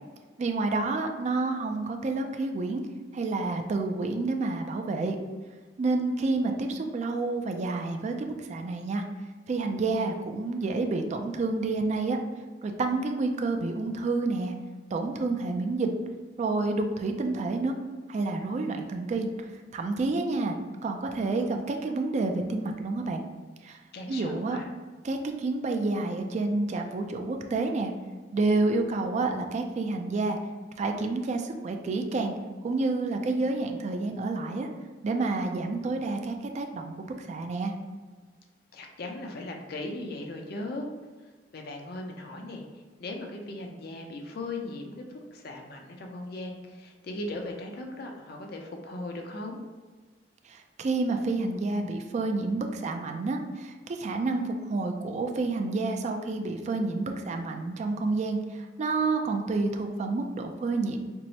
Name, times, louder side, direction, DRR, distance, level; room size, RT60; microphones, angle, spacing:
voice 1, 0.4-2.8 3.1-5.2 5.8-9.0 9.5-12.2 12.6-14.5 14.9-15.9 16.4-17.7 18.1-19.3 19.7-20.6 20.8-23.2 23.6-23.8 24.1-24.6 25.0-27.9 28.3-30.4 30.8-32.3 32.6-34.7 35.0-37.7 50.5-61.0, right 3 dB, 40° right, 4 dB, 0.3 m, -29 dB
voice 2, 23.9-24.7 38.7-40.9 41.5-49.6, left 2 dB, 60° left, 2 dB, 0.5 m, -38 dB
4.4 x 2.0 x 2.7 m, 1.4 s
head